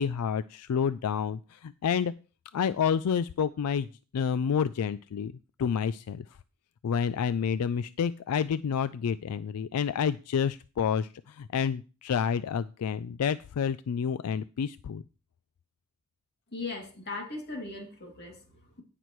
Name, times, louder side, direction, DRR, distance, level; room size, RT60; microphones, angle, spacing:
voice 1, 0.0-2.1 2.5-3.9 4.1-5.3 5.6-6.3 6.8-15.0, left 7 dB, 85° left, 14 dB, 0.4 m, -29 dB
voice 2, 16.5-18.8, left 3 dB, 50° left, 1 dB, 2.6 m, -39 dB
17.5 x 6.0 x 3.1 m, 0.35 s
head